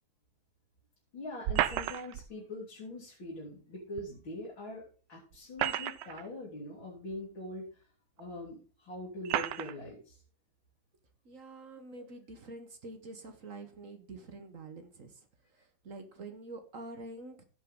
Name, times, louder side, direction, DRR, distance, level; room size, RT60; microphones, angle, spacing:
voice 1, 1.1-7.7 8.2-10.2 12.0-12.1, left 1 dB, 60° left, -5 dB, 3.8 m, -43 dB
sound 1, 1.4-2.3 4.0-4.1 5.3-6.3 7.1-7.2 8.2-8.3 9.2-9.8, right 12 dB, 75° right, 1.0 m, -32 dB
voice 2, 11.2-17.4, right 2 dB, 45° right, 7 dB, 1.3 m, -47 dB
16.5 x 5.5 x 3.7 m, 0.37 s
omnidirectional pair, 2.4 m